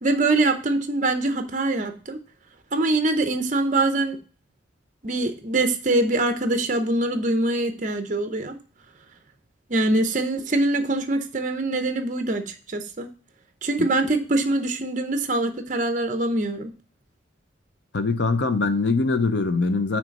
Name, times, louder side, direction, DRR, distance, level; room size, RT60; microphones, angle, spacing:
voice 1, 0.0-2.2 2.7-4.2 5.0-8.6 9.7-13.1 13.6-16.7, right 2 dB, 40° right, 0.7 m, -23 dB
voice 2, 17.9-20.0, left 3 dB, 70° left, 0.7 m, -22 dB
6.1 x 3.3 x 5.1 m
head